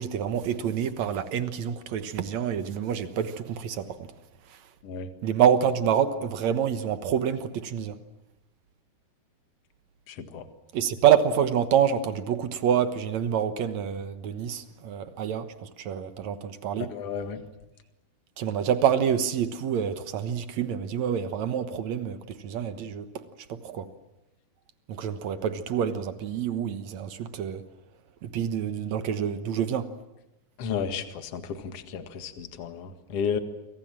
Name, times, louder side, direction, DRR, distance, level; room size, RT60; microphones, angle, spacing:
voice 1, 0.0-4.1 5.2-8.0 10.7-16.9 18.4-23.1 23.5-23.9 24.9-27.6 28.2-29.9, right 8 dB, 65° right, 1.8 m, -27 dB
voice 2, 10.1-10.4 16.9-17.4 30.6-33.4, left 6 dB, 45° left, 2.2 m, -33 dB
29.0 x 25.0 x 7.5 m
omnidirectional pair, 4.8 m